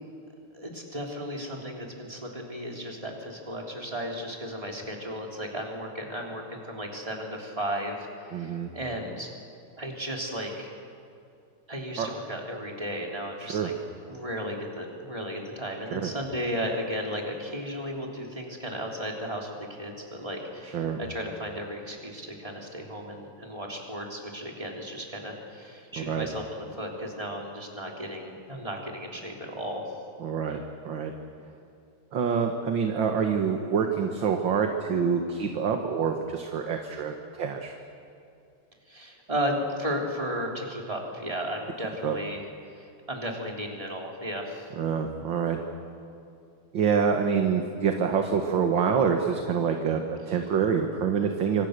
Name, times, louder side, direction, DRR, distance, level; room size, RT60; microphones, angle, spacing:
voice 1, 0.5-9.3 9.8-10.7 11.7-13.7 14.1-29.8 38.9-42.4 42.7-44.7, equal, 15° right, -1 dB, 3.5 m, -34 dB
voice 2, 8.3-8.7 12.0-12.1 13.4-13.7 15.9-16.1 20.7-21.0 26.0-26.3 30.2-30.6 30.9-31.1 32.1-37.7 42.0-42.2 44.8-45.6 46.7-51.7, right 6 dB, 60° right, 4 dB, 2.1 m, -26 dB
26.5 x 25.0 x 6.7 m, 2.6 s
omnidirectional pair, 2.4 m